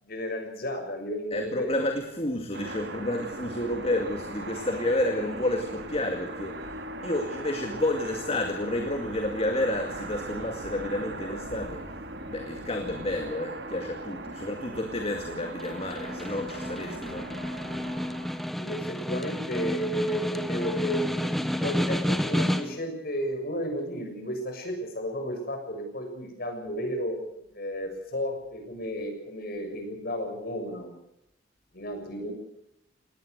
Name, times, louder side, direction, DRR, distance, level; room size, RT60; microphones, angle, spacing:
voice 1, 0.0-1.8 18.5-27.2 27.5-31.0 31.7-32.3, equal, 55° left, 4 dB, 6.8 m, -33 dB
voice 2, 1.3-11.8 12.3-17.3, left 1 dB, 35° left, 5 dB, 2.1 m, -30 dB
sound 1, 2.5-18.5, right 2 dB, 70° right, 2.5 m, -39 dB
Snare drum, 15.4-22.9, equal, ahead, 1.1 m, -30 dB
20.0 x 18.5 x 8.1 m, 0.84 s
head